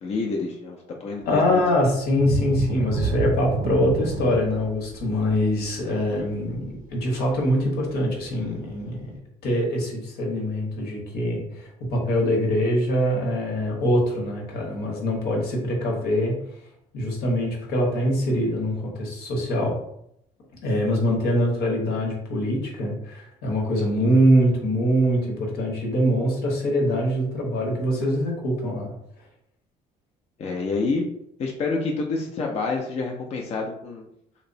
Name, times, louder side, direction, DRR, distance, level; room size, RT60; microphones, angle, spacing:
voice 1, 0.0-1.6 30.4-31.1 31.4-34.1, left 3 dB, 40° left, 0 dB, 0.4 m, -28 dB
voice 2, 1.3-9.1 9.4-16.3 16.9-19.8 20.6-28.9, equal, 70° left, -1 dB, 0.9 m, -23 dB
sound 1, 2.1-7.6 8.0-8.2 8.7-8.8, right 3 dB, 60° right, 0.5 m, -29 dB
2.8 x 2.0 x 2.6 m, 0.74 s
cardioid pair, 110°, 17 cm